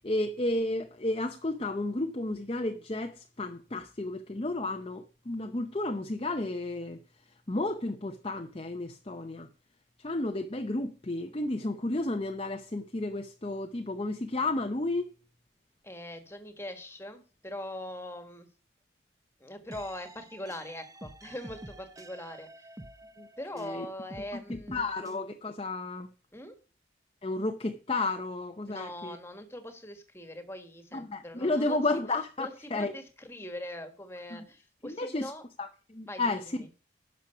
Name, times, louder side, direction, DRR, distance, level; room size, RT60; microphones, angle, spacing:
voice 1, 0.0-7.0 7.5-9.5 10.0-15.1 23.2-23.3 23.5-23.9 24.5-26.1 27.2-29.2 30.9-32.9 34.3-34.4 34.8-35.3 35.6-36.6, left 2 dB, 30° left, 0.7 m, -32 dB
voice 2, 15.8-18.5 19.4-22.7 23.0-23.1 23.4-24.9 26.3-26.6 28.7-31.8 32.4-35.4 36.1-36.7, left 1 dB, 15° left, 1.6 m, -42 dB
sound 1, 19.7-23.8 24.1-25.2, right 1 dB, 15° right, 0.8 m, -48 dB
11.5 x 6.4 x 5.6 m
head